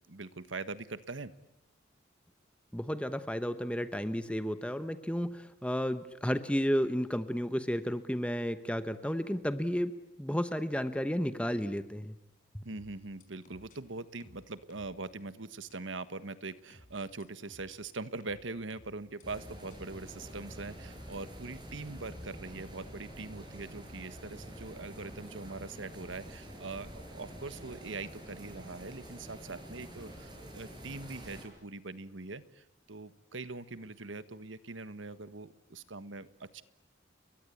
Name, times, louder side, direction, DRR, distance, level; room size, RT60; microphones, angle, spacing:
voice 1, 0.1-1.3 12.6-36.6, right 3 dB, 90° right, 13 dB, 1.4 m, -42 dB
voice 2, 2.7-9.9 10.2-12.2 12.5-12.6, equal, 5° left, 11 dB, 1.0 m, -32 dB
sound 1, 12.7-13.8 14.2-15.0 15.7-15.8 16.7-17.8 18.2-19.2 19.7-19.8, left 1 dB, 45° left, 4.8 m, -58 dB
sound 2, 19.2-31.5, equal, 25° right, 6.7 m, -47 dB
30.0 x 23.0 x 8.5 m, 0.88 s
head